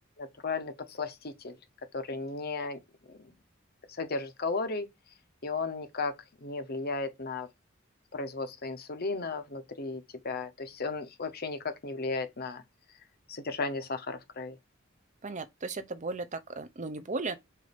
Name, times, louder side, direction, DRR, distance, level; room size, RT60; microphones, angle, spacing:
voice 1, 0.2-1.6 1.9-2.8 3.1-3.3 4.0-4.9 5.4-7.5 8.1-12.6 13.3-14.6, left 3 dB, 50° left, 1.0 m, -35 dB
voice 2, 15.2-17.4, right 3 dB, 40° right, 0.7 m, -36 dB
6.7 x 2.7 x 5.2 m
head